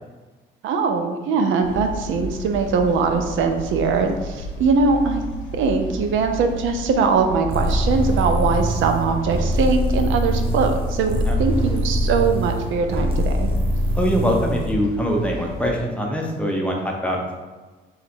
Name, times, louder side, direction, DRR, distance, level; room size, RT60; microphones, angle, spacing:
voice 1, 0.6-5.2 5.5-13.5, right 4 dB, 80° right, 5 dB, 0.6 m, -21 dB
sound 1, 1.6-15.8, equal, 85° left, 0.8 m, -34 dB
sound 2, 7.5-14.8, equal, 30° right, 0.7 m, -23 dB
voice 2, 13.9-17.3, equal, 5° left, -1 dB, 0.7 m, -23 dB
3.9 x 2.5 x 4.2 m, 1.3 s
cardioid pair, 90°, 20 cm